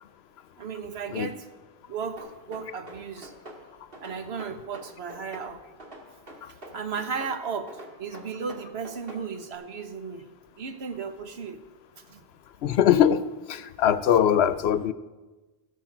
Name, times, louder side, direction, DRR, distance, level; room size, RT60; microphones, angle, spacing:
voice 1, 0.6-1.5 1.9-3.3 4.0-5.6 6.5-10.2 10.6-11.6 12.1-12.2 14.1-14.2, right 5 dB, 85° right, 8 dB, 1.3 m, -35 dB
sound 1, 2.2-3.6 3.9-5.5 5.8-7.4 7.7-9.2, right 1 dB, 60° right, 2.3 m, -44 dB
voice 2, 12.6-13.2 13.5-14.9, left 9 dB, 85° left, 14 dB, 0.9 m, -21 dB
16.5 x 6.9 x 6.0 m, 1.2 s
omnidirectional pair, 1.0 m